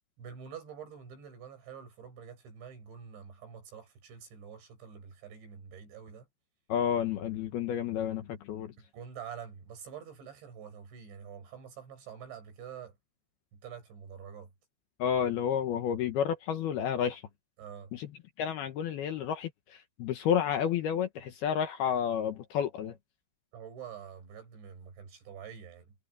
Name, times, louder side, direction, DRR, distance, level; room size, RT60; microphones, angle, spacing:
voice 1, 0.2-6.3 8.9-13.0 13.5-14.5 17.6-17.9 23.5-25.9, right 7 dB, 70° right, 7.7 m, -46 dB
voice 2, 6.7-8.7 15.0-17.2 17.9-18.1 18.4-23.0, left 8 dB, 70° left, 2.7 m, -30 dB
omnidirectional pair, 5.5 m